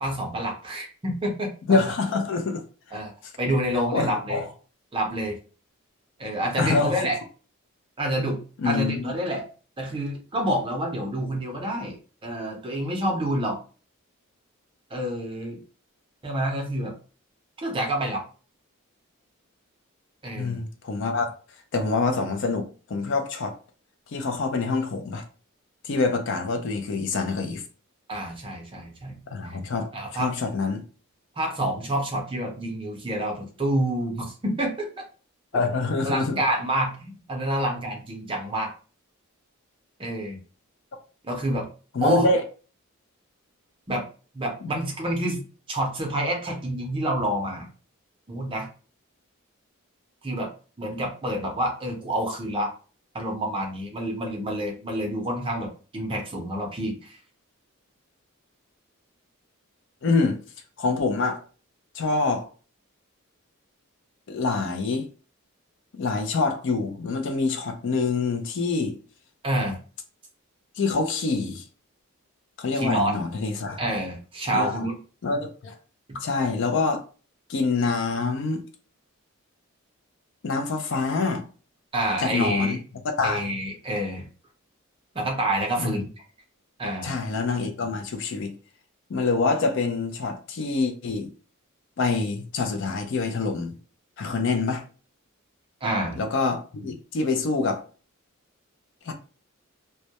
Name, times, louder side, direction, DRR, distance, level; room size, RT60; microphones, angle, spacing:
voice 1, 0.0-1.8 2.9-3.1 3.4-4.4 4.9-5.4 6.2-7.2 8.0-9.4 9.8-12.0 12.2-13.6 14.9-15.6 16.2-16.9 17.6-18.2 20.2-20.6 28.1-29.2 29.9-30.3 31.4-34.9 36.0-38.7 40.0-40.4 41.2-41.7 42.0-42.3 43.9-44.0 44.3-45.4 45.7-47.7 48.3-48.7 50.2-50.5 50.8-52.7 53.1-57.2 69.4-69.8 72.7-73.2 73.8-75.0 76.1-76.2 81.9-82.8 83.2-84.3 85.1-86.1 86.8-87.2 95.8-96.2, right 1 dB, 25° right, 0.5 m, -28 dB
voice 2, 1.7-2.6 2.9-3.0 3.9-4.5 6.6-7.0 8.6-9.1 20.4-21.3 21.7-23.5 24.1-25.2 25.8-27.6 29.3-30.8 35.5-36.4 41.9-42.4 44.6-44.7 60.0-60.4 60.8-61.4 61.9-62.5 64.3-65.1 65.9-68.9 70.8-71.6 72.6-73.8 74.5-74.8 75.2-75.8 76.1-77.0 77.5-78.6 80.4-81.4 82.2-82.8 83.2-83.5 85.8-86.0 87.0-88.5 89.1-91.3 92.0-93.8 94.2-94.8 96.2-97.8 99.1-99.2, left 4 dB, 55° left, 0.4 m, -26 dB
2.2 x 2.1 x 2.8 m
head